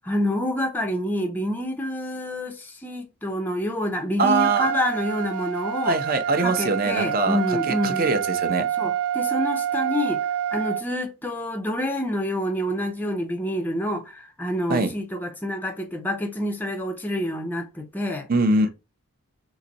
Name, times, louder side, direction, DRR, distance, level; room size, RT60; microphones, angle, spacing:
voice 1, 0.0-6.0 6.4-8.1 8.8-10.2 10.5-18.3, left 1 dB, 10° left, 0.4 m, -27 dB
voice 2, 4.2-4.7 5.8-8.7 14.7-14.9 18.3-18.7, right 3 dB, 40° right, 0.6 m, -23 dB
Trumpet, 4.3-10.8, right 9 dB, 85° right, 0.4 m, -27 dB
3.9 x 2.6 x 2.8 m
head